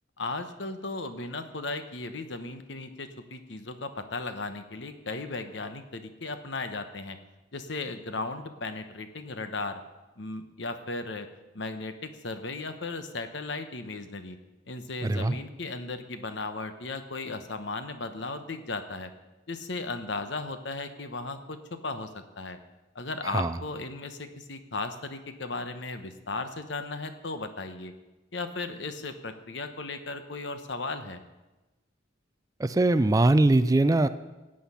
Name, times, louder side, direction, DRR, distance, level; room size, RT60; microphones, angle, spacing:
voice 1, 0.2-7.2 7.5-9.8 10.2-11.3 11.5-14.4 14.7-19.1 19.5-22.1 22.4-22.6 22.9-27.9 28.3-31.2, left 3 dB, 65° left, 8 dB, 1.1 m, -36 dB
voice 2, 15.0-15.4 23.3-23.5 32.6-34.1, right 2 dB, 20° right, 13 dB, 0.3 m, -21 dB
16.0 x 8.8 x 5.7 m, 1.1 s
head